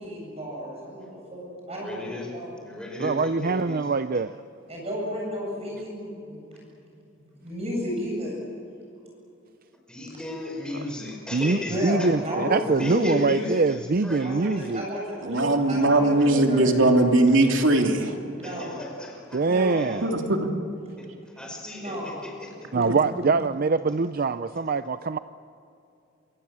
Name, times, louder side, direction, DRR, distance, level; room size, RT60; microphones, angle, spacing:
voice 1, 0.0-2.1 2.3-2.5 4.7-6.4 7.4-8.4 11.6-13.5 14.2-16.9 18.3-18.7 19.4-19.9 21.8-22.1, equal, 35° right, -2 dB, 7.9 m, -32 dB
voice 2, 1.7-2.3 2.6-4.2 9.9-12.1 12.6-14.8 18.4-20.0 21.0-22.7, left 2 dB, 5° left, -1 dB, 5.2 m, -36 dB
voice 3, 3.0-4.4 11.3-14.9 19.3-20.1 22.7-25.2, right 4 dB, 50° right, 12 dB, 0.5 m, -24 dB
voice 4, 15.2-18.2 20.0-20.5 22.8-22.9, right 2 dB, 75° right, 3 dB, 3.0 m, -20 dB
27.0 x 24.0 x 7.5 m, 2.7 s
head